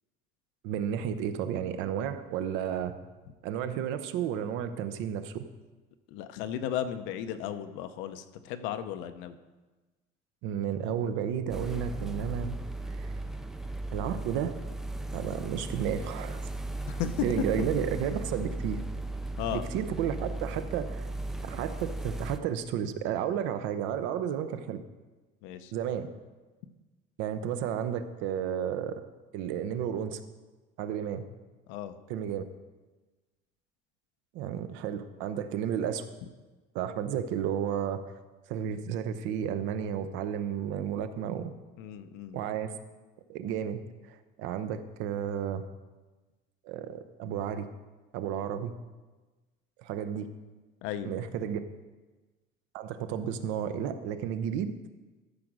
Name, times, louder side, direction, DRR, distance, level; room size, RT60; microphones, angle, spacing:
voice 1, 0.6-2.9 3.4-5.4 10.4-12.6 12.9-13.2 13.9-14.5 15.1-16.4 17.2-18.8 19.5-21.1 21.4-24.8 25.7-26.1 27.2-29.0 29.3-30.2 30.8-31.2 32.1-32.4 34.3-36.0 36.7-38.0 38.5-41.5 42.3-42.7 43.3-45.6 46.6-47.7 48.1-48.7 49.8-50.3 51.0-51.6 52.7-54.7, right 9 dB, 80° right, 10 dB, 0.8 m, -32 dB
voice 2, 6.1-9.4 16.9-17.2 19.4-19.7 25.4-25.7 31.7-31.9 41.8-42.4 50.8-51.1, left 10 dB, 85° left, 10 dB, 0.8 m, -35 dB
sound 1, 11.5-22.4, right 2 dB, ahead, 0.3 m, -36 dB
13.5 x 5.2 x 6.1 m, 1.2 s
cardioid pair, 165°, 19 cm